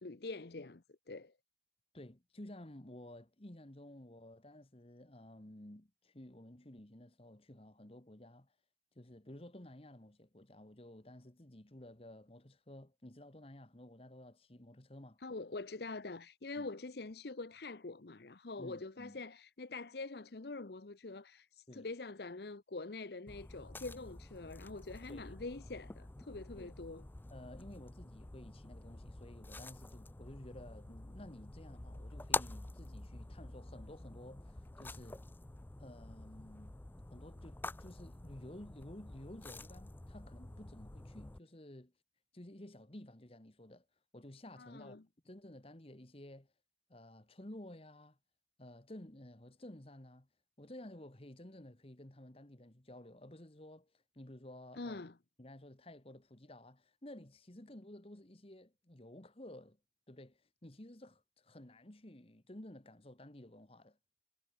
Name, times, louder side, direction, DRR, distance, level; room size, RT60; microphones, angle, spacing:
voice 1, 0.0-1.3 15.2-27.0 44.6-45.0 54.8-55.2, left 3 dB, 60° left, 0.8 m, -45 dB
voice 2, 1.9-8.5 8.9-15.2 16.5-16.7 18.6-19.2 21.7-21.9 25.1-25.3 26.6-26.7 27.3-35.2 35.8-36.8 37.1-41.9 42.3-43.8 44.1-46.5 46.9-48.2 48.6-50.3 50.6-55.0 55.4-59.8 60.1-64.0, left 1 dB, 30° left, 1.6 m, -53 dB
sound 1, 23.3-41.4, left 2 dB, 10° left, 0.3 m, -47 dB
head